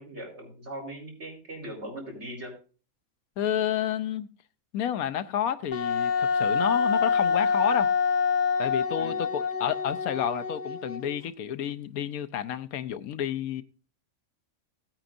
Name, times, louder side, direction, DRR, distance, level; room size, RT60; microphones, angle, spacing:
voice 1, 0.0-2.5 9.0-9.2, right 1 dB, 50° right, 4.6 m, -40 dB
voice 2, 3.4-4.3 4.7-7.9 8.6-13.6, left 9 dB, 85° left, 1.2 m, -30 dB
Wind instrument woodwind instrument, 5.7-11.2, left 5 dB, 35° left, 0.9 m, -26 dB
16.5 x 8.9 x 2.6 m
omnidirectional pair, 1.5 m